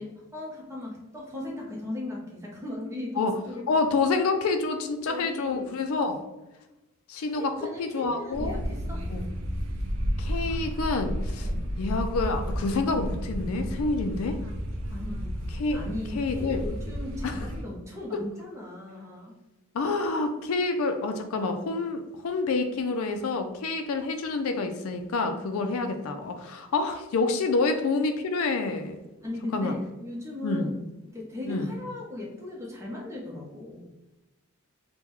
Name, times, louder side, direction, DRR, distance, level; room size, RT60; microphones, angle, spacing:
voice 1, 0.0-3.6 5.1-5.8 7.3-9.1 11.4-11.6 14.9-15.3 15.7-19.3 29.2-30.8 31.1-33.9, left 2 dB, 15° right, -3 dB, 0.7 m, -37 dB
voice 2, 3.7-6.2 7.1-7.5 7.8-8.6 9.1-9.2 10.2-11.5 11.8-14.4 15.6-15.8 16.1-16.6 17.2-17.5 19.7-29.0 29.5-29.7 30.4-30.7 31.5-31.7, left 3 dB, 70° left, 7 dB, 0.4 m, -28 dB
sound 1, 8.3-17.6, equal, 65° right, 0.5 m, -32 dB
3.5 x 2.2 x 3.0 m, 1.1 s
head